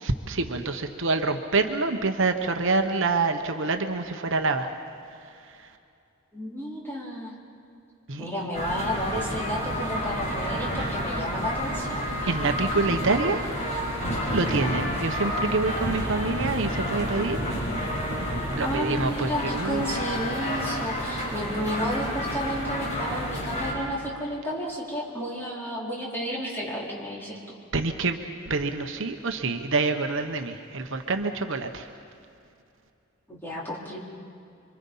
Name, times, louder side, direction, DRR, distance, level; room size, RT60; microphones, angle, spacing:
voice 1, 0.0-4.7 5.6-5.7 8.1-8.3 10.8-10.9 12.3-13.5 14.3-17.4 18.6-19.8 27.7-28.2 28.5-31.9, right 3 dB, 60° right, 6 dB, 1.1 m, -26 dB
voice 2, 6.3-7.3 8.2-12.5 14.3-14.7 18.6-27.4 33.3-34.0, equal, 10° left, -4 dB, 4.3 m, -32 dB
sound 1, 8.5-23.7, equal, 30° left, 6.3 m, -30 dB
27.0 x 25.0 x 5.6 m, 2.6 s
head